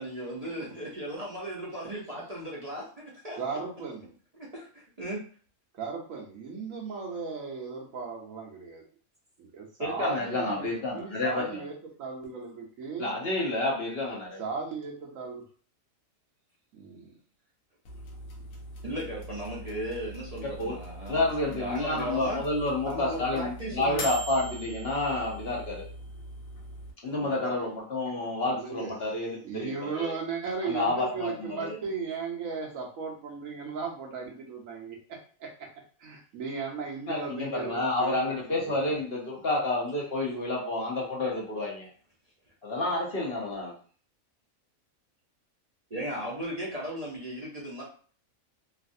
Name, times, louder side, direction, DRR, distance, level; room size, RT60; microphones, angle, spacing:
voice 1, 0.0-3.4 4.4-5.2 18.8-21.2 21.5-22.4 22.8-24.1 27.0-27.7 45.9-47.8, right 1 dB, 35° right, -5 dB, 0.7 m, -36 dB
voice 2, 3.3-4.1 5.7-8.8 9.4-11.7 12.0-13.1 14.4-15.4 16.7-17.2 28.5-28.9 29.4-35.0 35.4-35.5 36.0-38.9, right 5 dB, 75° right, 0 dB, 1.2 m, -36 dB
voice 3, 9.8-11.6 13.0-14.4 20.6-20.8 21.1-25.8 27.0-30.1 30.6-31.8 37.1-41.9 42.6-43.7, left 2 dB, 50° left, -3 dB, 0.9 m, -30 dB
sound 1, 17.9-26.9, equal, 70° left, 1.2 m, -42 dB
3.2 x 2.5 x 2.6 m, 0.43 s
omnidirectional pair, 1.4 m